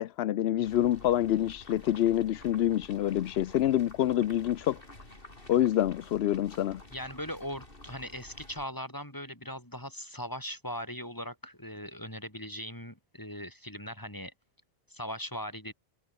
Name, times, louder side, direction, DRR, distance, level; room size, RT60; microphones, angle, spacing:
voice 1, 0.0-4.8 5.5-6.8, left 12 dB, 85° left, 0.8 m, -27 dB
sound 1, 0.6-8.6, left 2 dB, 60° left, 5.3 m, -51 dB
voice 2, 6.9-14.3 14.9-15.7, equal, 20° left, 7.5 m, -39 dB
omnidirectional pair, 1.0 m